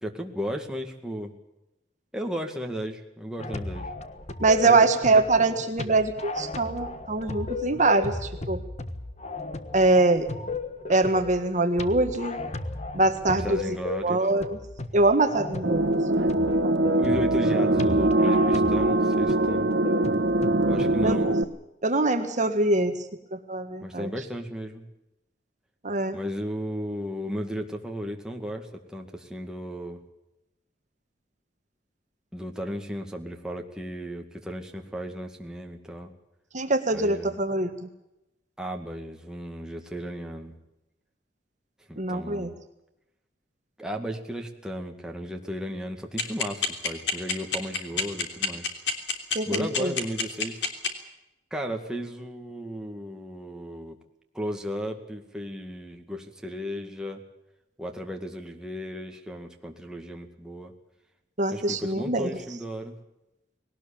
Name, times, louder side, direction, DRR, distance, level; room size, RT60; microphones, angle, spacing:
voice 1, 0.0-1.4 2.1-3.9 4.6-4.9 5.1-5.6 13.2-14.3 17.0-19.7 20.7-21.3 23.8-24.9 26.1-30.0 32.3-36.1 36.9-37.4 38.6-40.5 41.9-42.6 43.8-48.7 49.5-50.7 51.5-54.0 54.3-57.2 57.8-60.7 61.5-63.0, equal, 5° right, 2 dB, 2.1 m, -35 dB
sound 1, 3.4-21.3, left 2 dB, 40° left, 1.5 m, -35 dB
voice 2, 4.4-8.6 9.7-10.3 10.9-12.4 12.9-13.6 14.0-14.6 14.9-16.8 21.0-21.2 21.8-23.0 23.3-24.1 25.8-26.2 36.5-37.7 42.0-42.5 49.3-49.9 61.4-62.3, right 2 dB, 45° right, 6 dB, 1.6 m, -23 dB
sound 2, 15.6-21.4, right 2 dB, 75° right, 1.3 m, -22 dB
sound 3, 46.2-50.9, left 6 dB, 75° left, 3.2 m, -25 dB
20.5 x 18.5 x 8.7 m, 0.91 s
head